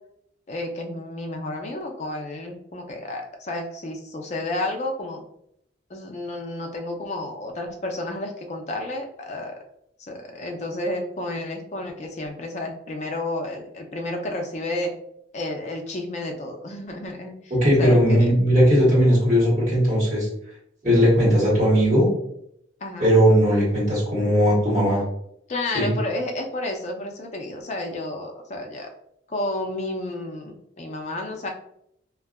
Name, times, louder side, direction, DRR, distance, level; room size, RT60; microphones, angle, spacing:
voice 1, 0.5-5.2 5.9-9.5 10.0-14.9 15.3-17.3 17.8-18.3 22.8-23.1 25.5-28.9 29.3-31.5, left 1 dB, 35° left, 3 dB, 0.4 m, -31 dB
voice 2, 17.5-20.3 20.8-22.1 23.0-25.0 25.7-25.9, equal, 40° right, -8 dB, 1.4 m, -18 dB
2.6 x 2.3 x 2.2 m, 0.73 s
head